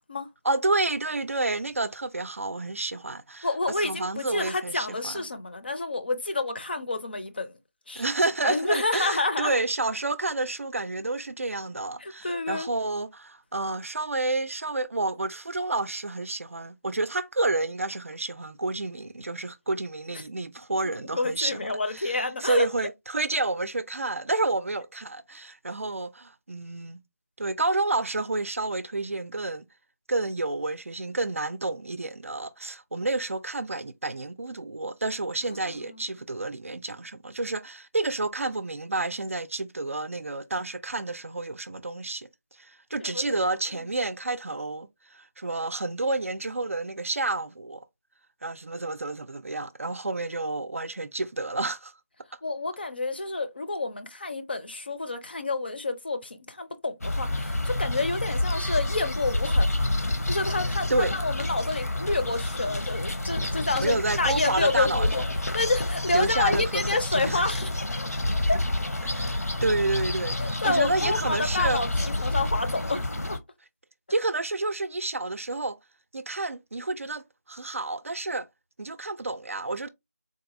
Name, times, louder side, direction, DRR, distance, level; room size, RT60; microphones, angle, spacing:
voice 1, 0.4-3.5 3.8-5.3 8.0-21.6 21.9-27.0 27.4-29.7 30.1-42.3 42.6-47.8 48.4-51.9 60.9-61.2 63.8-65.3 66.1-67.4 69.0-71.8 74.1-75.8 76.1-78.5 78.8-79.9, right 2 dB, 55° right, 0.4 m, -29 dB
voice 2, 3.4-7.5 7.9-8.0 8.4-9.6 12.0-12.7 21.1-22.7 35.7-36.0 43.0-43.4 52.4-59.8 60.3-65.2 65.5-67.7 68.0-68.1 68.5-68.6 70.4-73.4, left 3 dB, 40° left, 0.5 m, -29 dB
sound 1, 57.0-73.4, left 1 dB, 75° left, 0.8 m, -28 dB
3.9 x 2.5 x 2.5 m
figure-of-eight pair, 165°, 9 cm